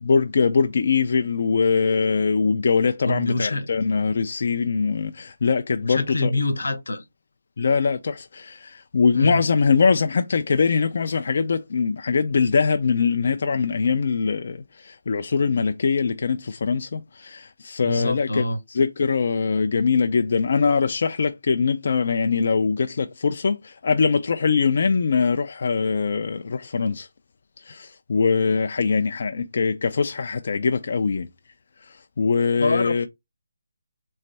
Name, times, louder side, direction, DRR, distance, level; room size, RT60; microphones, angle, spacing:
voice 1, 0.0-6.3 7.6-18.4 18.7-27.1 27.7-31.3 32.2-33.1, left 5 dB, 45° left, 0.4 m, -22 dB
voice 2, 3.0-3.7 5.8-7.0 9.1-9.4 17.8-18.6 32.6-33.1, left 1 dB, 85° left, 1.0 m, -25 dB
3.2 x 3.2 x 4.0 m
hypercardioid pair, 170°, 0 cm